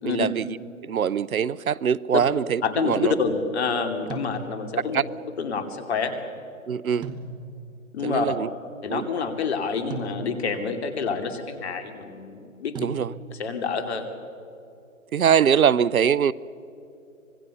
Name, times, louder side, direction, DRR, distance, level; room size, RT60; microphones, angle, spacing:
voice 1, 0.0-0.5 0.8-3.1 4.9-5.0 6.7-7.1 8.0-8.5 8.9-9.1 12.8-13.1 15.1-16.3, right 8 dB, 80° right, 0.7 m, -23 dB
voice 2, 2.6-5.0 5.4-6.1 7.9-8.3 8.8-12.7 13.3-14.1, left 5 dB, 50° left, 2.7 m, -27 dB
sound 1, 4.1-4.9 7.0-7.8 9.9-10.7 12.7-13.5, right 3 dB, 10° right, 1.1 m, -38 dB
25.5 x 20.5 x 7.0 m
figure-of-eight pair, 140°, 41 cm